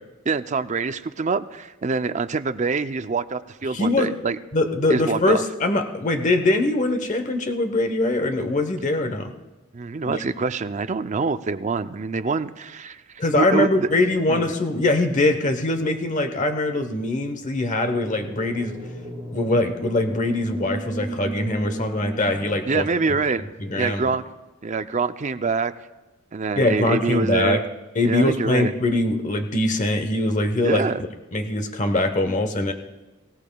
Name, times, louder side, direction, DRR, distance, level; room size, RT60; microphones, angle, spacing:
voice 1, 0.3-4.4 4.9-5.4 9.7-13.9 14.3-14.5 22.7-23.5 23.7-24.2 24.6-25.7 26.3-27.6 28.1-28.7 30.6-31.0, right 4 dB, 35° right, 11 dB, 0.5 m, -25 dB
voice 2, 3.7-4.1 4.5-9.3 10.1-10.2 13.2-18.8 19.3-22.8 23.6-24.0 26.6-27.6 28.0-30.8 31.3-32.7, left 2 dB, 35° left, 6 dB, 1.0 m, -22 dB
sound 1, 17.7-23.8, right 1 dB, 10° left, 4.2 m, -36 dB
23.5 x 16.5 x 2.3 m, 1.1 s
head